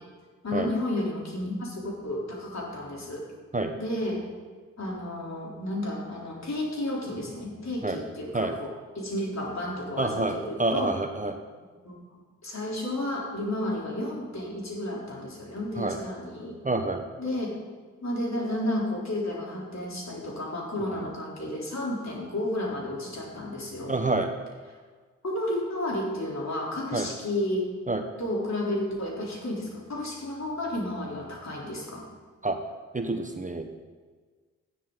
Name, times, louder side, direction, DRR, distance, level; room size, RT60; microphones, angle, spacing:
voice 1, 0.4-3.3 3.8-4.3 4.8-8.7 9.0-10.9 11.8-12.0 12.4-16.6 17.2-17.5 18.0-23.9 25.2-27.7 28.2-32.0, left 1 dB, 55° left, -3 dB, 3.9 m, -32 dB
voice 2, 10.0-11.3 15.8-16.0 16.6-17.1 23.9-24.3 26.9-27.1 27.9-28.0 32.4-32.6 32.9-33.7, right 2 dB, 25° right, 5 dB, 1.2 m, -27 dB
13.0 x 9.9 x 4.0 m, 1.5 s
supercardioid pair, 40°, 33 cm